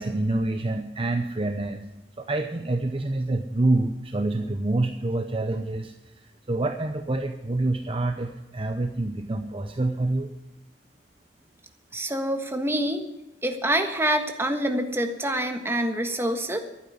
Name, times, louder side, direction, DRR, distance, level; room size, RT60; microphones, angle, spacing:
voice 1, 0.0-1.8 2.2-5.9 6.5-10.3, right 2 dB, 30° right, 6 dB, 0.8 m, -27 dB
voice 2, 11.9-13.0 13.4-16.6, right 1 dB, 15° right, 5 dB, 1.5 m, -26 dB
12.0 x 9.5 x 9.6 m, 0.95 s
head